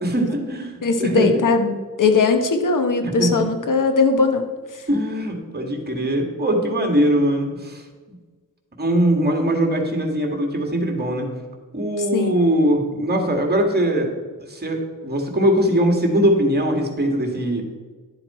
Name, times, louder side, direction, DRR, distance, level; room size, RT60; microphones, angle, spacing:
voice 1, 0.0-0.7 1.0-1.3 3.0-3.3 4.9-7.8 8.8-11.3 11.7-14.1 14.4-17.6, right 1 dB, 30° right, 3 dB, 1.9 m, -21 dB
voice 2, 0.8-4.5 4.7-4.8 12.0-12.3, left 4 dB, 70° left, 6 dB, 1.2 m, -19 dB
11.5 x 7.7 x 4.3 m, 1.4 s
wide cardioid pair, 120°, 33 cm